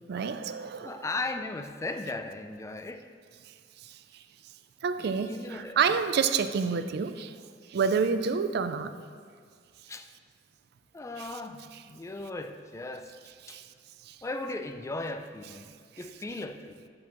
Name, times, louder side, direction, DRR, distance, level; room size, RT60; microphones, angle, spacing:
voice 1, 0.1-1.0 3.8-4.0 4.8-7.3 7.7-8.9 11.2-11.3 13.4-13.6 14.1-14.2, right 6 dB, 60° right, 11 dB, 0.4 m, -28 dB
voice 2, 0.8-3.1 5.0-5.8 9.9-10.1 10.9-13.1 13.5-13.6 14.2-15.7 16.0-16.9, left 2 dB, 15° left, 7 dB, 0.3 m, -37 dB
8.5 x 6.2 x 3.0 m, 2.1 s
head